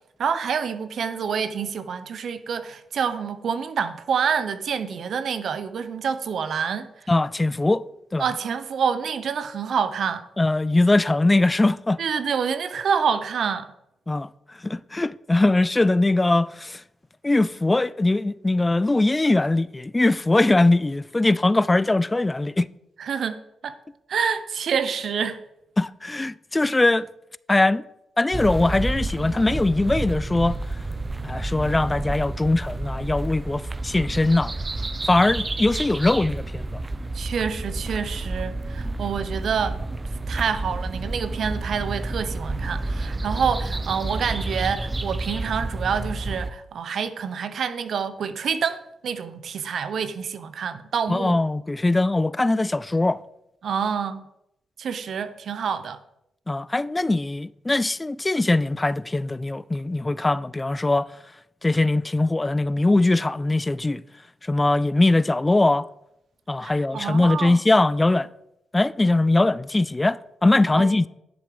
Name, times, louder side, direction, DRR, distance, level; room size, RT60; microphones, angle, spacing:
voice 1, 0.2-6.9 8.2-10.3 12.0-13.7 23.0-23.4 23.6-23.8 24.1-25.4 37.1-39.8 40.3-51.4 53.6-54.2 54.8-56.0 66.6-67.6 70.8-70.9, right 6 dB, 70° right, 0.8 m, -27 dB
voice 2, 7.1-7.8 8.1-8.3 10.4-12.0 14.1-16.8 17.2-22.7 25.8-27.1 27.5-27.8 28.2-30.6 31.2-34.5 35.0-36.8 51.1-53.2 56.5-61.1 61.6-64.0 64.4-65.9 66.5-68.3 68.7-71.1, left 2 dB, 20° left, 0.4 m, -21 dB
sound 1, 28.3-46.5, right 2 dB, 30° right, 0.7 m, -30 dB
10.5 x 7.0 x 5.1 m
cardioid pair, 75°, 0 cm